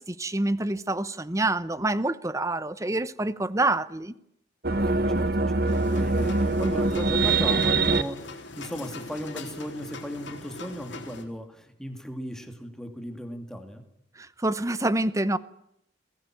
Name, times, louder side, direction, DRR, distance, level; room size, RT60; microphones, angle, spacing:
voice 1, 0.0-4.1 14.2-15.4, right 2 dB, 15° right, 0.8 m, -27 dB
sound 1, 4.6-8.0, right 3 dB, 55° right, 1.1 m, -23 dB
voice 2, 4.7-13.8, equal, 5° left, 2.6 m, -37 dB
sound 2, 5.7-11.2, left 3 dB, 75° left, 3.8 m, -42 dB
22.5 x 17.0 x 9.1 m
head